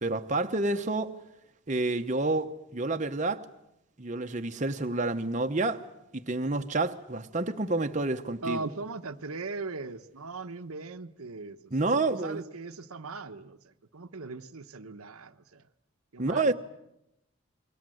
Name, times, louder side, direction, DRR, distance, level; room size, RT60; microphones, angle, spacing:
voice 1, 0.0-1.1 1.7-3.4 4.0-5.8 6.1-8.6 11.7-12.4 16.2-16.5, right 2 dB, 35° right, 1.0 m, -29 dB
voice 2, 8.4-11.6 11.9-15.6 16.1-16.5, right 3 dB, 85° right, 1.1 m, -39 dB
29.0 x 23.0 x 7.8 m
head